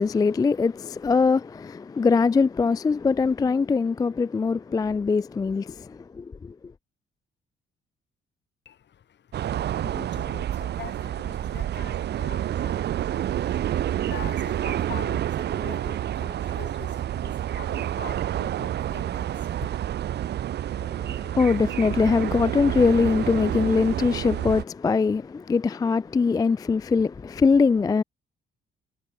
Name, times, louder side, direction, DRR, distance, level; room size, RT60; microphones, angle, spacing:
voice 1, 0.0-6.5 20.8-28.0, left 4 dB, 20° left, 0.3 m, -22 dB
voice 2, 8.6-19.9, left 9 dB, 65° left, 7.7 m, -44 dB
sound 1, 9.3-24.6, right 11 dB, 60° right, 0.6 m, -29 dB
cardioid pair, 90°, 20 cm